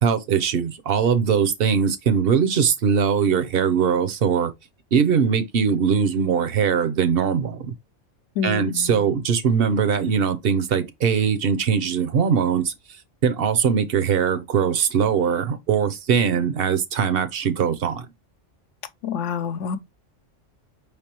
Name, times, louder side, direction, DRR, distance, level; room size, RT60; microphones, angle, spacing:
voice 1, 0.0-4.5 4.9-7.7 8.4-12.7 13.2-18.1, right 7 dB, 55° right, 0.8 m, -21 dB
voice 2, 8.4-9.1 19.0-19.8, left 6 dB, 75° left, 1.0 m, -28 dB
5.4 x 3.4 x 2.9 m
omnidirectional pair, 1.2 m